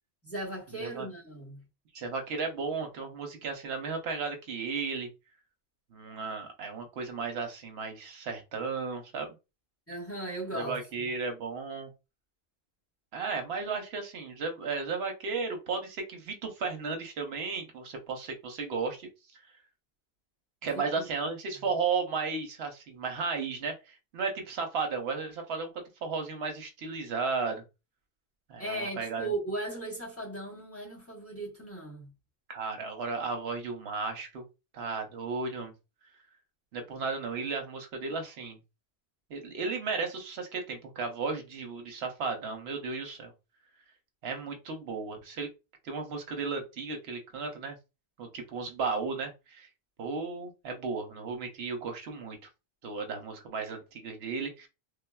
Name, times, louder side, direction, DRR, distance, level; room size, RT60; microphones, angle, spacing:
voice 1, 0.2-1.6 9.9-10.8 20.7-21.1 28.6-32.1, right 2 dB, 15° left, 1.2 m, -37 dB
voice 2, 1.9-5.1 5.9-9.3 10.5-11.9 13.1-19.1 19.3-19.4 20.6-25.7 26.0-27.6 28.5-29.3 32.5-34.4 34.7-35.7 36.7-38.6 39.3-43.3 44.2-45.5 45.8-47.8 48.2-49.7 50.0-52.4 52.8-54.7, right 4 dB, 85° right, 0.9 m, -34 dB
3.5 x 2.3 x 2.2 m
omnidirectional pair, 1.0 m